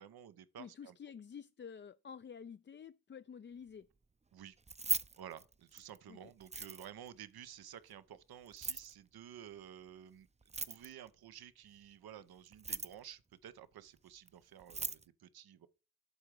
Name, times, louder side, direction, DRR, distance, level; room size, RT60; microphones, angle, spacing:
voice 1, 0.0-1.0 4.3-4.6 5.2-15.7, right 10 dB, 80° right, 0.7 m, -53 dB
voice 2, 0.6-3.9 6.1-6.2, left 7 dB, 30° left, 0.4 m, -50 dB
Keys jangling, 4.6-6.0 6.4-7.1 8.5-8.9 10.4-11.1 12.5-13.1 14.3-14.4 14.6-15.0, right 4 dB, 20° right, 0.5 m, -39 dB
8.1 x 3.6 x 6.3 m
supercardioid pair, 40°, 36 cm